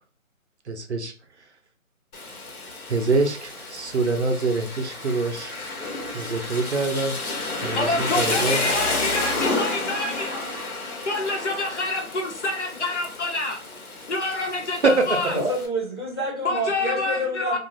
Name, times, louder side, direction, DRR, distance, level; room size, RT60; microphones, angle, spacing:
voice 1, 0.7-1.5 2.9-5.6 6.1-7.2 7.6-8.7 14.8-15.2, right 3 dB, 55° right, 5 dB, 0.5 m, -25 dB
Rain, 2.1-15.7, left 2 dB, 85° left, 1.1 m, -31 dB
voice 2, 7.8-10.5 11.1-13.6 14.1-15.4 16.4-17.6, left 2 dB, 55° left, 2 dB, 0.7 m, -27 dB
voice 3, 15.4-17.6, equal, 20° left, -6 dB, 0.6 m, -27 dB
2.5 x 2.3 x 3.1 m, 0.40 s
figure-of-eight pair, 160°, 42 cm